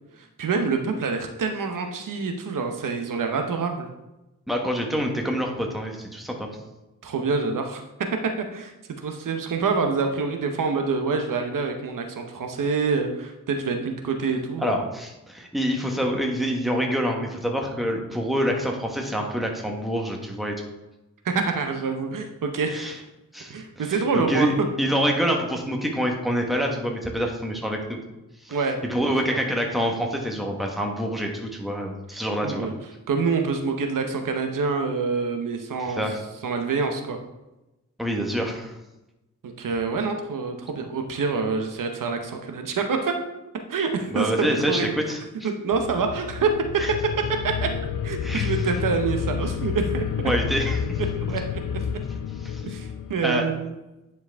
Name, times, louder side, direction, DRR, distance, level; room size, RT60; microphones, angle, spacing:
voice 1, 0.2-3.9 7.0-14.9 21.2-23.0 23.5-24.5 28.5-29.4 32.4-32.8 33.1-36.0 36.4-37.2 39.4-43.2 43.7-44.9 45.4-46.5 47.3-47.7 48.0-50.3 51.0-51.8 52.6-53.7, right 4 dB, 80° right, 5 dB, 0.9 m, -26 dB
voice 2, 4.5-6.5 14.6-20.5 22.7-23.0 23.3-28.0 28.4-28.6 28.8-32.7 35.9-36.2 38.0-38.7 44.1-45.2 46.8-46.9 48.2-48.5 50.2-51.0 52.4-52.6 53.2-53.4, equal, ahead, 1 dB, 1.3 m, -26 dB
sound 1, 45.7-53.1, left 7 dB, 80° left, 0.5 m, -29 dB
9.8 x 4.6 x 3.5 m, 0.98 s
wide cardioid pair, 90°, 32 cm